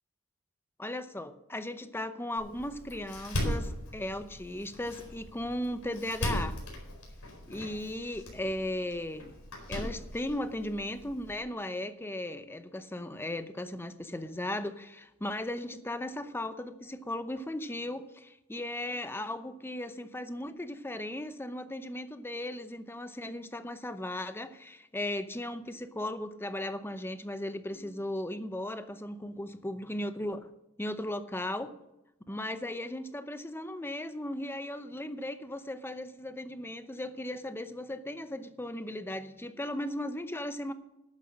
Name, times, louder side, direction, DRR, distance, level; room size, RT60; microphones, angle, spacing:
voice 1, 0.8-6.6 7.5-9.3 9.7-30.5 30.8-31.7 32.3-40.7, left 1 dB, 10° left, 11 dB, 0.7 m, -37 dB
Door, 2.4-11.4, equal, 80° left, 4.5 m, -39 dB
11.5 x 9.3 x 6.5 m, 0.91 s
head